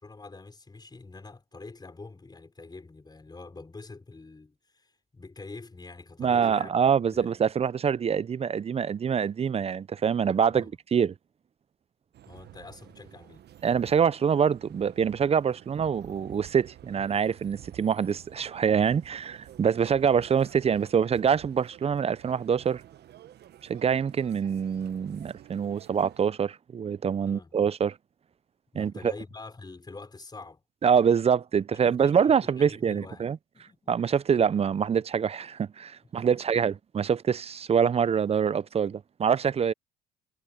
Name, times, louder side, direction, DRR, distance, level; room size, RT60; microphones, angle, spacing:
voice 1, 0.0-6.8 7.1-7.3 10.5-10.7 12.3-13.5 27.3-27.5 28.7-30.6 31.9-32.1 32.4-33.2 33.5-33.9 36.1-36.8, left 3 dB, 20° left, 5.5 m, -46 dB
voice 2, 6.2-11.1 13.6-22.8 23.7-28.0 28.7-29.1 30.8-33.4 33.9-39.7, right 7 dB, 30° right, 0.6 m, -25 dB
sound 1, 12.1-26.3, right 12 dB, 55° right, 1.3 m, -51 dB
supercardioid pair, 75°, 20 cm